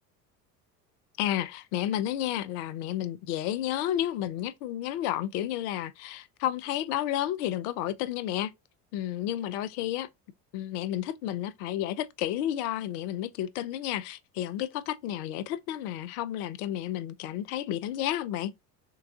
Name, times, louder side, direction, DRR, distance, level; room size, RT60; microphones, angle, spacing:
voice 1, 1.2-8.5 8.9-10.1 10.5-18.5, left 12 dB, 65° left, 0.6 m, -31 dB
3.4 x 3.2 x 2.2 m
hypercardioid pair, 70°, 49 cm